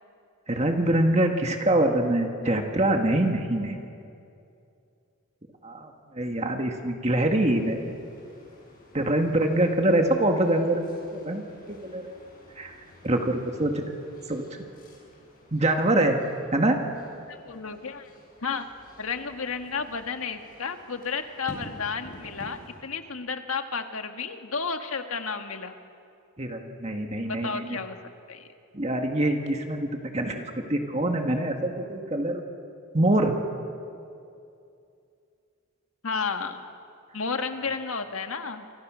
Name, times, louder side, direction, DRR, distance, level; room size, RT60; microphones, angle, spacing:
voice 1, 0.5-3.8 5.6-8.0 8.9-12.2 12.6-12.8 13.0-13.8 14.3-14.4 15.5-16.2 16.5-16.8 26.4-27.8 28.7-32.4 32.9-33.4, right 1 dB, 30° right, 3 dB, 1.8 m, -25 dB
sound 1, 7.4-22.8, equal, 40° left, 7.5 m, -51 dB
voice 2, 17.3-18.1 18.4-18.7 19.0-25.7 27.2-28.0 28.3-28.5 36.0-36.6 37.1-38.7, left 5 dB, 80° left, 6 dB, 1.7 m, -32 dB
29.0 x 26.5 x 6.3 m, 2.5 s
head